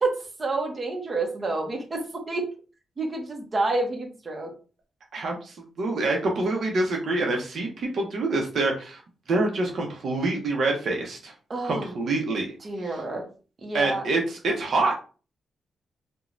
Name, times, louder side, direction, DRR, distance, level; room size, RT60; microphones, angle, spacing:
voice 1, 0.0-2.5 3.0-4.5 11.5-11.9 12.6-13.3 13.6-14.1, right 2 dB, 35° right, 1 dB, 0.7 m, -29 dB
voice 2, 5.1-9.0 9.3-11.3 11.6-12.5 13.7-15.0, right 2 dB, 65° right, 1 dB, 0.6 m, -26 dB
3.0 x 2.1 x 2.5 m, 0.36 s
cardioid pair, 110°, 0 cm